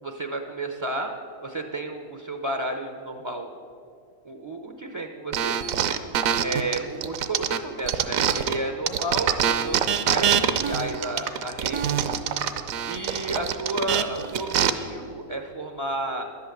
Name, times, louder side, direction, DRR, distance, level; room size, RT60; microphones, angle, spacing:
voice 1, 0.0-1.1 1.4-3.5 4.2-5.6 6.4-11.8 12.9-16.2, right 2 dB, 50° right, 5 dB, 0.3 m, -32 dB
sound 1, 5.3-8.6 8.9-14.7, right 9 dB, 75° right, 1.0 m, -24 dB
11.0 x 8.6 x 7.8 m, 2.5 s
omnidirectional pair, 1.5 m